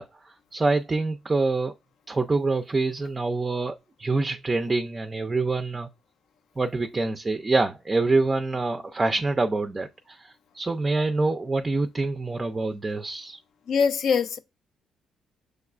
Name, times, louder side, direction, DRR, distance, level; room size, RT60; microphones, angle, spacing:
voice 1, 0.0-1.7 2.1-5.9 6.6-13.4, right 3 dB, 25° right, 0.4 m, -26 dB
voice 2, 13.7-14.4, left 6 dB, 70° left, 0.4 m, -22 dB
6.3 x 2.3 x 2.4 m
cardioid pair, 100°, 0 cm